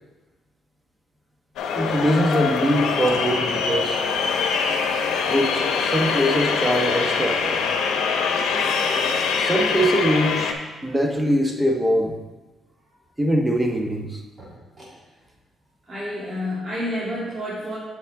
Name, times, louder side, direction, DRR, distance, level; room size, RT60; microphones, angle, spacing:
sound 1, 1.6-10.5, left 5 dB, 80° left, 0.8 m, -23 dB
voice 1, 1.7-4.0 5.3-7.6 9.4-10.5 10.8-12.2 13.2-14.2, equal, 10° right, 3 dB, 1.0 m, -22 dB
voice 2, 15.9-17.8, left 1 dB, 35° right, -10 dB, 2.8 m, -29 dB
7.3 x 7.2 x 3.6 m, 1.2 s
cardioid pair, 90°, 0 cm